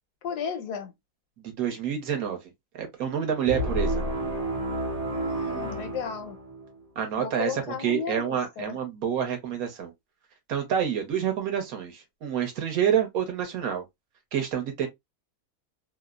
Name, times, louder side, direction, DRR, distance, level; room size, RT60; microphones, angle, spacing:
voice 1, 0.2-0.9 5.1-6.4 7.2-8.8, left 6 dB, 80° left, 1.2 m, -34 dB
voice 2, 1.4-2.4 2.7-4.0 7.0-9.9 10.5-13.8 14.3-14.9, right 8 dB, 65° right, 1.2 m, -28 dB
sound 1, 3.5-6.8, right 1 dB, 45° right, 0.8 m, -30 dB
3.0 x 2.0 x 2.2 m
omnidirectional pair, 1.7 m